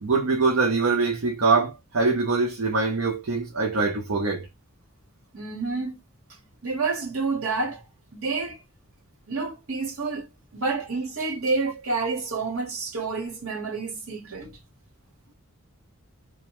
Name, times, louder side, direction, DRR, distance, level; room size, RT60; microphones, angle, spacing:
voice 1, 0.0-4.5, right 4 dB, 60° right, 0.5 m, -23 dB
voice 2, 5.3-6.0 6.6-7.8 8.1-8.6 9.3-14.6, right 3 dB, 75° right, 1.2 m, -29 dB
2.8 x 2.2 x 2.9 m
head